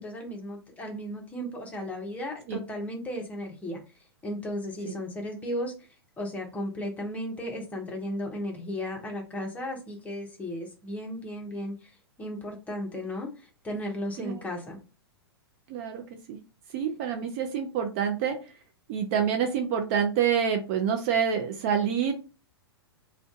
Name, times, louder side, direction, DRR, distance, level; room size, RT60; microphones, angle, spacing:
voice 1, 0.0-3.8 4.2-5.7 6.2-11.9 12.2-14.8, left 1 dB, 10° left, 1 dB, 0.7 m, -35 dB
voice 2, 15.7-16.0 16.3-16.4 16.7-18.4 18.9-22.2, right 7 dB, 35° right, 4 dB, 0.5 m, -27 dB
2.5 x 2.2 x 3.6 m, 0.32 s
figure-of-eight pair, 105°, 13 cm